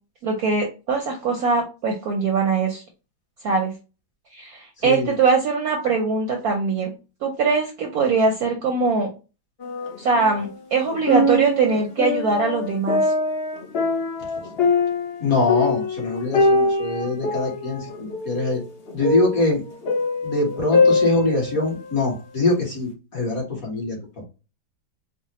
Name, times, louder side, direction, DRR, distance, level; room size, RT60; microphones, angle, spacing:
voice 1, 0.2-2.8 3.4-3.7 4.3-6.9 7.2-9.1 10.0-13.1, right 4 dB, 65° right, 2 dB, 0.9 m, -22 dB
voice 2, 4.8-5.1 15.2-17.9 18.2-18.6 18.9-19.6 20.2-24.0, left 2 dB, 45° left, -2 dB, 1.8 m, -23 dB
sound 1, 9.6-10.5 10.9-22.0 22.5-22.6, left 3 dB, 65° left, 0.6 m, -23 dB
4.8 x 2.1 x 2.9 m, 0.31 s
omnidirectional pair, 2.2 m